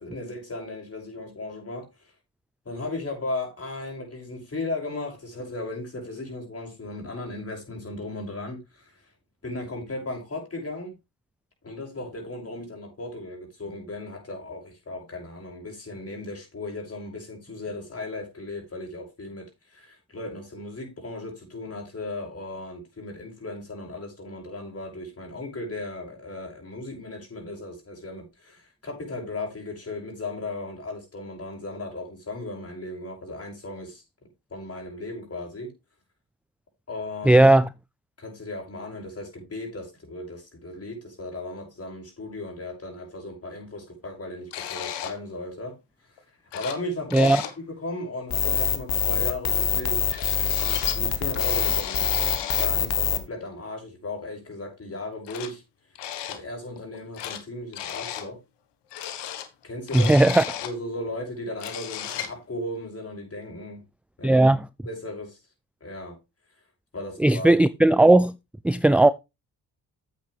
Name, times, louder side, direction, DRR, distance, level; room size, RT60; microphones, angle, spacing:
voice 1, 0.0-2.1 2.6-9.0 9.4-10.9 11.6-34.0 34.5-35.7 36.9-37.5 38.2-45.7 46.5-50.1 50.6-55.6 56.3-58.4 59.6-60.3 60.6-63.8 64.2-64.4 64.8-65.4 65.8-66.2 66.9-67.5, left 2 dB, 35° left, 6.5 m, -36 dB
voice 2, 37.3-37.7 47.1-47.4 59.9-60.4 64.2-64.7 67.2-68.3 68.6-69.1, right 2 dB, 5° right, 0.4 m, -17 dB
sound 1, 44.5-45.2 46.2-46.3 46.5-46.9 47.1-47.6 50.1-51.0 51.3-52.8 54.2-54.3 55.3-55.5 56.0-56.4 56.8-57.4 57.7-58.3 58.9-60.8 61.2-61.3 61.5-62.4, left 10 dB, 85° left, 1.5 m, -34 dB
sound 2, 48.3-53.2, left 9 dB, 65° left, 1.6 m, -24 dB
9.7 x 8.2 x 3.3 m
supercardioid pair, 65°, 41 cm